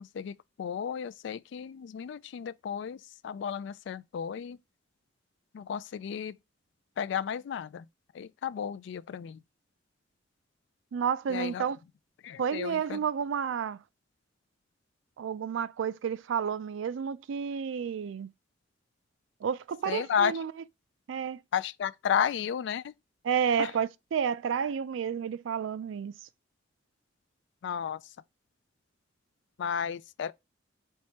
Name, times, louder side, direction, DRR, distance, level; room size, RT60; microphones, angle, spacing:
voice 1, 0.0-4.6 5.5-6.3 7.0-7.9 8.1-9.4 11.3-11.6 12.2-13.0 19.9-20.3 21.5-22.9 23.6-23.7 27.6-28.0 29.6-30.3, left 8 dB, 65° left, 0.3 m, -33 dB
voice 2, 10.9-11.8 12.4-13.8 15.2-18.3 19.4-20.5 21.1-21.4 23.2-26.1, right 7 dB, 85° right, 0.4 m, -31 dB
4.6 x 3.2 x 2.8 m
head